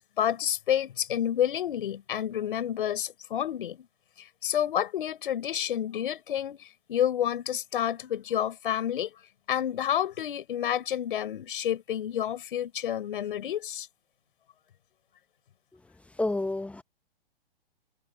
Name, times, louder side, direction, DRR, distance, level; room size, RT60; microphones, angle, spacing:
voice 1, 0.2-3.9 4.2-9.1 9.5-13.9, left 10 dB, 60° left, 6.0 m, -29 dB
voice 2, 16.2-16.8, left 2 dB, 5° left, 1.7 m, -29 dB
figure-of-eight pair, 115°, 31 cm